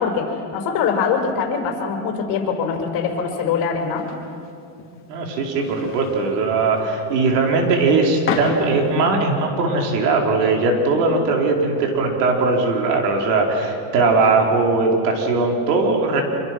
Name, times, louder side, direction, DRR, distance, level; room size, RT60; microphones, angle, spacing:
voice 1, 0.0-4.1 10.9-11.2, left 6 dB, 45° left, 1 dB, 5.7 m, -23 dB
sound 1, 3.8-9.1, left 5 dB, 25° left, 4.2 m, -33 dB
voice 2, 5.1-16.2, right 3 dB, 80° right, 1 dB, 4.8 m, -19 dB
26.0 x 24.5 x 6.2 m, 2.5 s
supercardioid pair, 135°, 46 cm